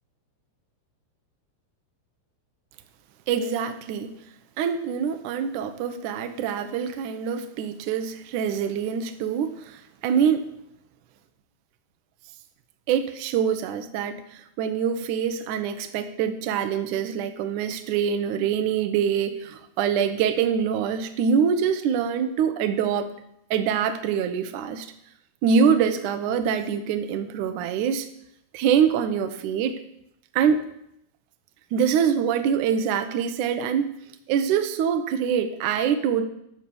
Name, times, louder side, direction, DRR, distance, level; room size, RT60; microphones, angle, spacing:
voice 1, 3.3-4.1 4.6-10.4 12.9-23.1 23.5-24.9 25.4-28.1 28.5-29.8 30.3-30.7 31.7-33.9 34.3-36.2, right 7 dB, 70° right, 7 dB, 1.9 m, -24 dB
13.0 x 6.0 x 7.0 m, 0.76 s
omnidirectional pair, 4.7 m